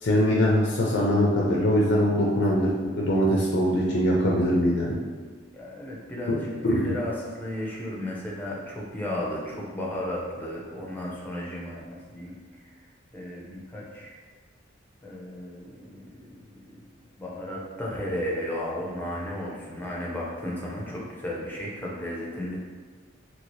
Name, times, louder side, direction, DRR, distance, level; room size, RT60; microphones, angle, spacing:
voice 1, 0.0-2.7 3.0-4.9 6.6-6.9, equal, 60° left, -3 dB, 0.5 m, -22 dB
voice 2, 5.5-12.4 12.6-12.8 13.1-14.2 15.0-16.9 17.2-22.6, left 1 dB, 10° left, -4 dB, 0.6 m, -34 dB
2.9 x 2.7 x 3.1 m, 1.5 s
head